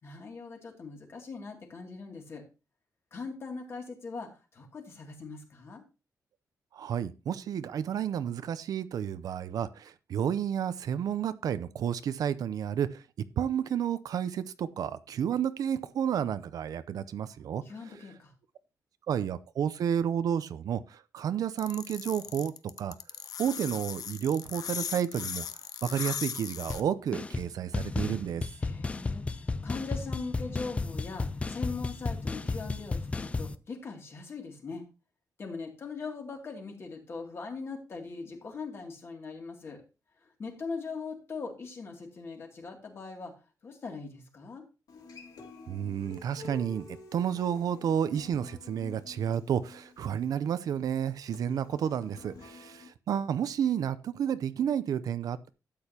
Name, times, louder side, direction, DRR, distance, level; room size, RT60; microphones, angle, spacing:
voice 1, 0.0-2.4 3.1-5.8 17.6-18.3 28.6-34.8 35.4-39.8 40.2-43.4 43.6-44.6, left 4 dB, 40° left, 2 dB, 2.5 m, -41 dB
voice 2, 6.7-13.0 13.4-17.6 19.1-22.5 22.8-23.0 23.4-25.5 25.8-28.4 45.7-55.5, right 9 dB, 70° right, 14 dB, 0.6 m, -31 dB
sound 1, 21.6-26.8, left 9 dB, 70° left, 0.6 m, -38 dB
sound 2, 26.7-26.8 27.1-27.5 27.7-33.5, left 3 dB, 20° left, 0.4 m, -33 dB
Human voice / Acoustic guitar, 44.9-52.9, left 3 dB, 85° left, 2.3 m, -49 dB
12.5 x 8.7 x 2.9 m, 0.30 s
wide cardioid pair, 170°, 6 cm